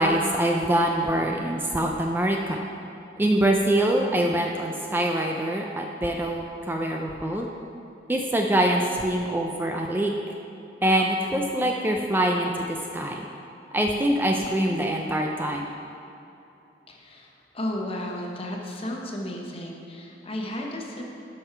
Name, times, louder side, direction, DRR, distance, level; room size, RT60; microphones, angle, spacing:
voice 1, 0.0-2.6 3.2-7.5 8.1-10.1 10.8-12.5 12.9-13.3 13.7-15.7, right 1 dB, 10° right, 1 dB, 0.4 m, -24 dB
voice 2, 16.9-21.0, left 1 dB, 35° left, 0 dB, 1.0 m, -33 dB
11.5 x 5.5 x 4.5 m, 2.8 s
head